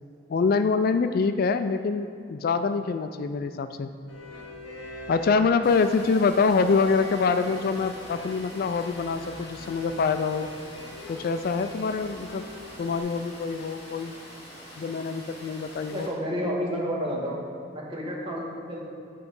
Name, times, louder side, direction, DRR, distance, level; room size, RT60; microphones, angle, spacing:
voice 1, 0.3-3.9 5.1-10.5 11.1-12.4 12.8-14.1 14.8-16.1, left 4 dB, 50° left, 9 dB, 0.3 m, -25 dB
sound 1, 4.1-13.0, left 1 dB, 70° left, 1.1 m, -41 dB
Water, 5.6-16.1, equal, 30° left, 1.9 m, -45 dB
voice 2, 15.9-17.4 17.7-18.9, equal, 30° right, -4 dB, 1.6 m, -30 dB
10.0 x 4.7 x 5.3 m, 2.4 s
head